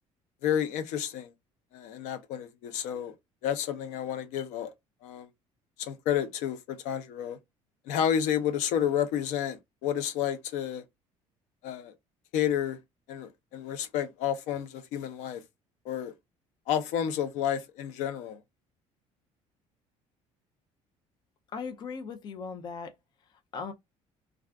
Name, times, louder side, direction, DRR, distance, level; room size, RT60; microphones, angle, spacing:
voice 1, 0.4-1.3 1.7-3.1 3.4-4.7 5.0-5.3 5.8-7.4 7.9-10.8 11.6-11.9 12.3-12.8 13.1-15.4 15.8-16.1 16.7-18.4, left 9 dB, 85° left, 0.6 m, -30 dB
voice 2, 21.5-22.9 23.5-23.7, left 5 dB, 35° left, 0.5 m, -38 dB
2.3 x 2.3 x 3.4 m
cardioid pair, 150°, 12 cm